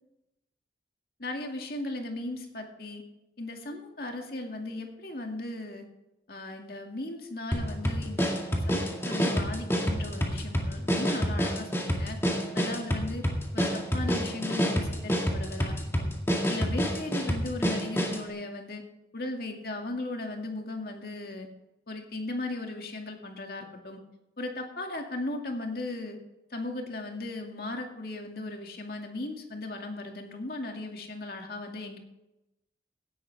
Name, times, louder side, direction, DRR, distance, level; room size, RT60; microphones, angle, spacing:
voice 1, 1.2-3.0 3.4-5.8 6.3-12.2 12.5-13.3 13.5-16.1 16.5-18.8 19.1-21.5 21.9-24.0 24.4-26.2 26.5-32.0, left 2 dB, 55° left, 2 dB, 2.2 m, -37 dB
sound 1, 7.5-18.3, equal, 15° left, 2.1 m, -28 dB
17.5 x 11.0 x 3.5 m, 0.92 s
head